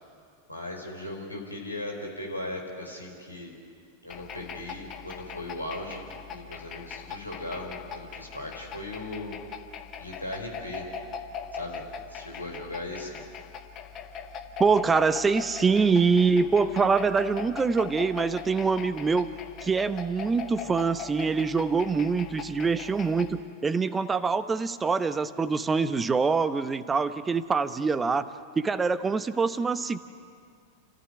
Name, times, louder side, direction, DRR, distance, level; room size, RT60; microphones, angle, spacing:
voice 1, 0.5-3.5 4.0-9.4 10.0-10.9 11.5-11.8 12.1-13.3, left 1 dB, 85° left, 0 dB, 5.0 m, -38 dB
sound 1, 4.1-23.4, left 6 dB, 30° left, 1.7 m, -41 dB
voice 2, 14.6-19.3 19.6-28.3 28.6-30.0, right 4 dB, 15° right, 13 dB, 0.9 m, -24 dB
29.5 x 14.5 x 9.9 m, 2.3 s
figure-of-eight pair, 90°, 0 cm